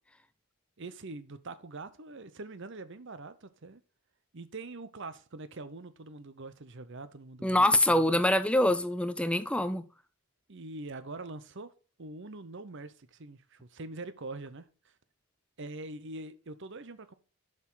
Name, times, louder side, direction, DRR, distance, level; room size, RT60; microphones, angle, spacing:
voice 1, 0.8-3.8 4.3-8.2 10.5-11.7 12.0-14.9 15.6-17.1, right 2 dB, 55° right, 0.8 m, -44 dB
voice 2, 7.4-9.9, left 1 dB, 5° left, 0.5 m, -25 dB
7.1 x 6.1 x 5.6 m
head